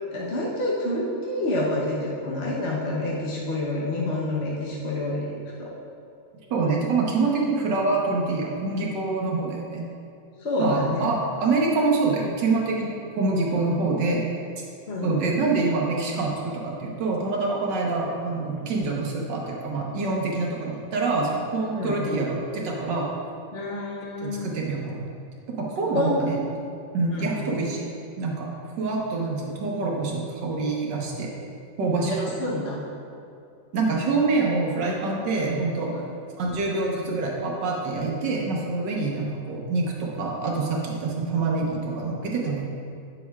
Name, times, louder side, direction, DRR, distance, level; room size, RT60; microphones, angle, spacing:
voice 1, 0.1-5.3 5.6-5.7 10.4-11.2 14.9-15.2 21.7-22.1 23.5-24.5 25.9-26.2 27.1-27.4 32.0-32.8 35.9-36.1, left 1 dB, 45° left, -6 dB, 0.9 m, -28 dB
voice 2, 6.5-9.9 10.6-14.2 15.0-23.1 24.2-25.1 25.6-26.4 26.9-27.9 28.2-28.5 28.8-31.3 31.8-32.1 33.7-35.9 36.4-42.7, right 3 dB, 65° right, -2 dB, 1.6 m, -26 dB
8.9 x 7.3 x 2.3 m, 2.6 s
omnidirectional pair, 2.1 m